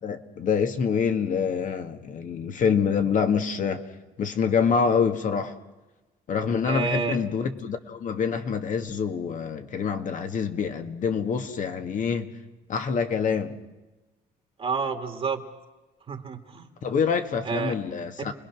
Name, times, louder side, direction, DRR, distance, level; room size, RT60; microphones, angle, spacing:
voice 1, 0.0-3.8 4.2-5.5 6.3-12.3 12.7-13.6 16.8-18.3, left 6 dB, 50° left, 1.9 m, -26 dB
voice 2, 6.6-7.2 14.6-15.4 16.1-16.7 17.5-17.7 18.2-18.3, right 5 dB, 35° right, 2.1 m, -29 dB
29.5 x 21.0 x 6.2 m
cardioid pair, 110°, 17 cm